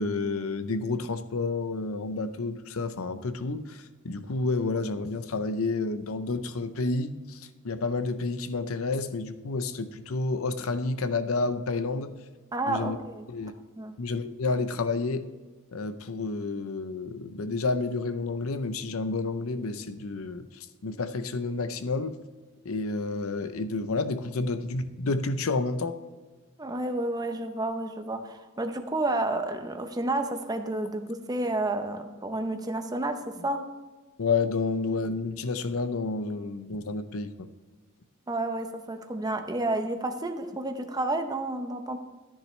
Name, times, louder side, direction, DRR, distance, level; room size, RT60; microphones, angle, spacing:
voice 1, 0.0-12.1 12.7-13.0 13.3-13.5 14.0-15.3 15.7-20.5 20.8-22.2 22.6-26.0 34.2-37.5, left 3 dB, 70° left, 10 dB, 0.6 m, -30 dB
voice 2, 12.5-13.3 13.8-13.9 26.6-33.7 38.3-42.0, right 2 dB, 20° right, 6 dB, 0.7 m, -30 dB
13.5 x 9.8 x 3.2 m, 1.3 s
head